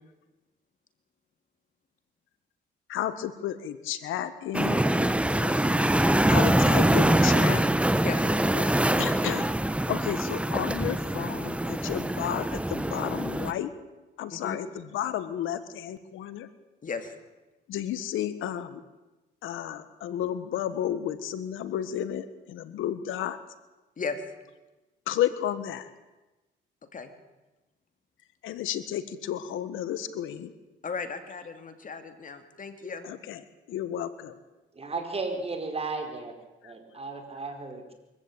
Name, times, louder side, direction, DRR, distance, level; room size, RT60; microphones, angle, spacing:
voice 1, 2.9-4.8 6.3-7.6 9.0-9.4 9.9-13.7 14.2-16.5 17.7-18.8 19.4-23.4 25.1-25.9 28.4-30.5 33.0-33.4 33.7-34.3 36.6-36.7, left 11 dB, 85° left, 13 dB, 1.5 m, -32 dB
sound 1, 4.5-13.5, right 1 dB, 5° right, 1.2 m, -24 dB
voice 2, 5.3-5.7 8.0-8.8 14.3-14.6 16.8-17.2 24.0-24.2 26.9-27.1 30.8-33.1, left 5 dB, 40° left, 8 dB, 2.6 m, -36 dB
voice 3, 34.7-36.3 36.6-37.9, right 3 dB, 30° right, 5 dB, 4.8 m, -34 dB
24.0 x 15.0 x 8.8 m, 1.1 s
cardioid pair, 90°, 20 cm